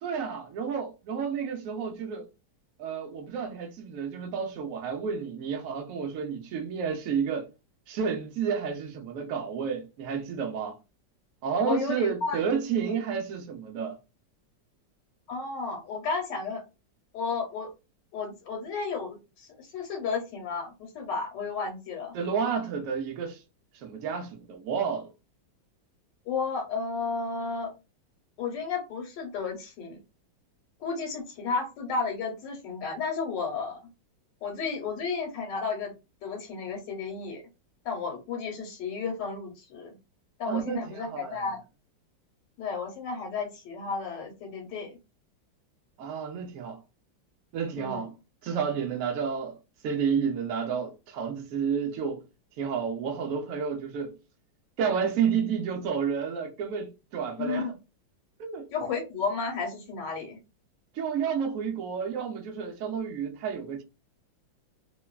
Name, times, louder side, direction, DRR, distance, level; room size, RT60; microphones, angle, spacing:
voice 1, 0.0-2.3 2.8-7.5 7.9-10.8 11.4-14.0 22.1-23.4 23.7-25.1 40.5-41.4 46.0-46.8 47.5-48.1 48.4-49.6 49.8-52.2 52.6-54.2 54.8-57.7 58.4-58.7 60.9-63.8, right 6 dB, 85° right, 0.7 m, -30 dB
voice 2, 11.6-12.4 15.3-16.6 17.1-17.7 18.1-22.1 26.3-27.7 28.4-30.0 30.8-33.8 34.4-35.9 36.2-37.4 37.8-40.0 40.4-41.6 42.6-45.0 47.8-48.0 57.4-57.7 58.7-60.4, left 4 dB, 75° left, 1.3 m, -33 dB
3.1 x 2.2 x 2.2 m
omnidirectional pair, 2.1 m